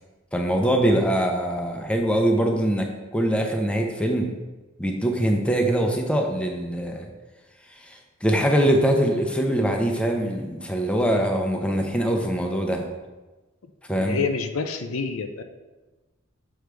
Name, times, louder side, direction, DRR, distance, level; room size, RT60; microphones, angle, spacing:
voice 1, 0.3-4.3 4.8-7.1 7.8-12.8 13.9-14.2, right 1 dB, 5° left, 2 dB, 0.6 m, -23 dB
voice 2, 14.0-15.4, left 5 dB, 90° left, 7 dB, 0.5 m, -28 dB
6.3 x 6.3 x 3.4 m, 1.2 s
head